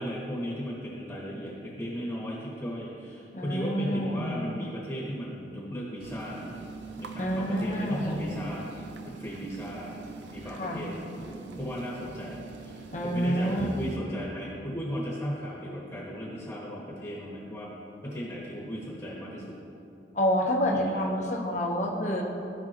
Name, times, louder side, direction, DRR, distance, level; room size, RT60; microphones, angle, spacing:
voice 1, 0.0-6.6 7.0-17.7 18.0-19.6 20.7-21.0, equal, 15° left, -6 dB, 1.3 m, -36 dB
voice 2, 3.3-4.4 7.2-8.2 10.6-10.8 12.9-13.7 20.1-22.2, equal, 40° left, -1 dB, 1.0 m, -28 dB
sound 1, 6.0-14.0, right 4 dB, 80° right, 0.6 m, -43 dB
15.0 x 5.4 x 3.0 m, 2.9 s
head